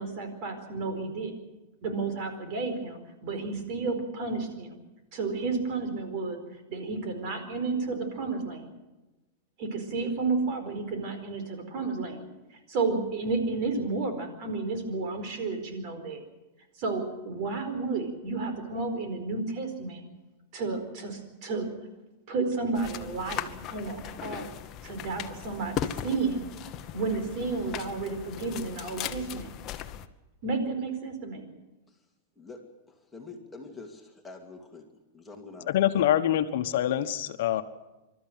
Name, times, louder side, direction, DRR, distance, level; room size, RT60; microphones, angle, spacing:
voice 1, 0.0-1.3 1.8-4.7 5.1-6.4 6.7-8.7 9.6-12.2 12.7-16.2 16.8-20.0 20.5-21.7 22.3-24.5 24.8-26.5 26.9-29.5 30.4-31.5, right 3 dB, 45° right, 6 dB, 4.5 m, -31 dB
sound 1, 22.7-30.1, left 10 dB, 30° left, 1.0 m, -38 dB
voice 2, 32.4-34.9 35.1-35.7 35.9-36.1, left 3 dB, 5° left, 1 dB, 2.5 m, -46 dB
voice 3, 35.7-37.6, left 11 dB, 65° left, 9 dB, 1.2 m, -25 dB
26.5 x 13.0 x 9.1 m, 1.1 s
supercardioid pair, 155°, 0 cm